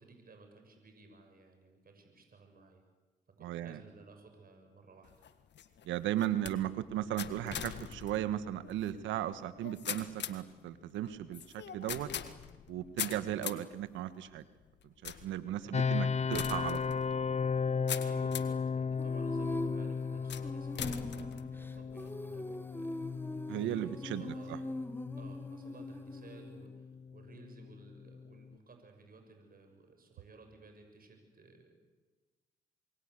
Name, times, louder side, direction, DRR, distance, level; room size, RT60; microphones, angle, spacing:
voice 1, 0.0-2.8 3.4-5.3 15.6-15.8 18.0-24.6 25.2-31.9, right 3 dB, 50° right, 5 dB, 7.0 m, -56 dB
voice 2, 3.4-3.8 5.8-12.1 12.7-14.4 15.0-17.0 23.5-24.6, right 12 dB, 80° right, 12 dB, 1.5 m, -36 dB
sound 1, 5.0-18.7 19.2-19.7 20.3-22.1, left 9 dB, 65° left, 1.8 m, -43 dB
sound 2, 15.7-28.5, left 5 dB, 35° left, 0.8 m, -36 dB
Female singing, 19.0-26.7, left 1 dB, 10° left, 2.8 m, -42 dB
27.0 x 23.0 x 8.2 m, 1.3 s
hypercardioid pair, 45°, 19 cm